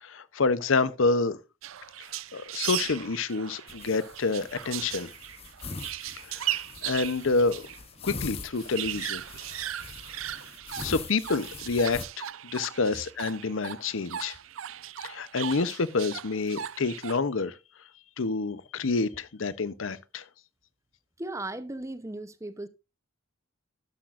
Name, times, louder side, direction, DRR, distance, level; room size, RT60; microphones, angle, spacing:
voice 1, 0.0-1.4 2.3-5.1 6.3-7.7 8.0-9.2 10.8-14.4 15.0-17.5 18.2-20.2, left 3 dB, 80° left, 0.7 m, -28 dB
sound 1, 1.6-7.8 8.1-8.2 8.4-17.2, right 12 dB, 85° right, 0.5 m, -37 dB
sound 2, 3.7-12.0, left 4 dB, 30° left, 0.8 m, -43 dB
voice 2, 21.2-22.7, right 2 dB, 15° right, 0.7 m, -36 dB
12.5 x 10.0 x 2.5 m
head